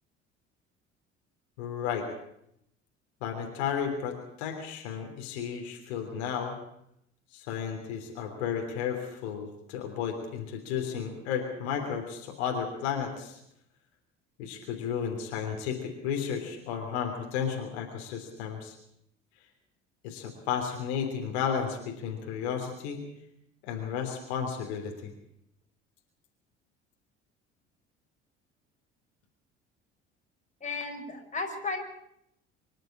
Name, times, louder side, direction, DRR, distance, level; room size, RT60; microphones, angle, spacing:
voice 1, 1.6-2.1 3.2-6.5 7.3-13.4 14.4-18.7 20.0-23.1 23.6-25.1, left 7 dB, 65° left, 3 dB, 3.4 m, -33 dB
voice 2, 30.6-31.8, left 4 dB, 20° left, 2 dB, 5.1 m, -34 dB
25.0 x 12.0 x 8.7 m, 0.77 s
figure-of-eight pair, 60°, 35 cm